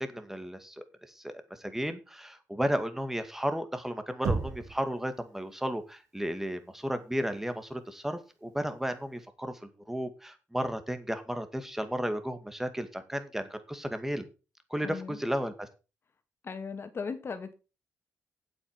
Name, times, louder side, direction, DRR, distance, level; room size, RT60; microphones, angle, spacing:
voice 1, 0.0-14.3 14.7-15.7, equal, 5° right, 2.1 m, -34 dB
Knock, 4.2-4.9, right 4 dB, 85° right, 2.3 m, -31 dB
voice 2, 14.8-15.2 16.4-17.5, left 5 dB, 45° left, 2.2 m, -37 dB
8.4 x 8.0 x 5.8 m
cardioid pair, 85°, 6 cm